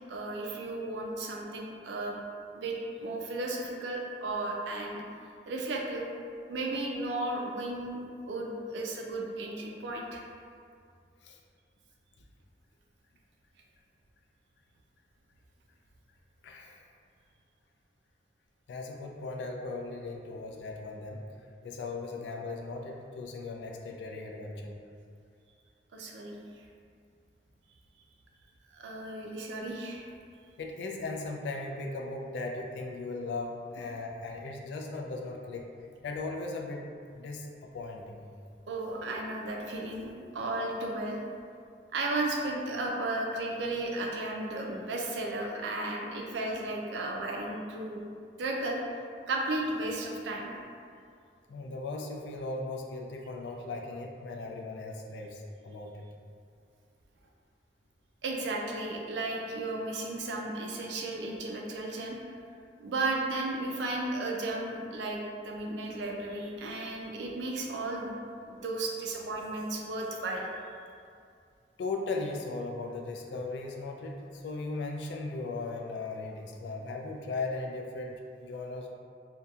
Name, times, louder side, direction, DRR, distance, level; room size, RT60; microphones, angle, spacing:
voice 1, 0.1-2.2 2.5-5.0 5.5-6.1 6.5-10.2 25.9-26.6 28.7-30.1 38.7-41.2 41.9-48.0 48.4-48.8 49.3-50.5 58.2-62.2 62.8-68.1 68.5-70.5, right 2 dB, 85° right, 0 dB, 0.4 m, -34 dB
voice 2, 16.4-16.8 18.7-21.2 21.6-24.8 30.6-35.7 36.0-38.3 51.5-56.1 71.8-78.9, left 3 dB, 80° left, 1 dB, 0.3 m, -37 dB
2.7 x 2.2 x 2.3 m, 2.3 s
head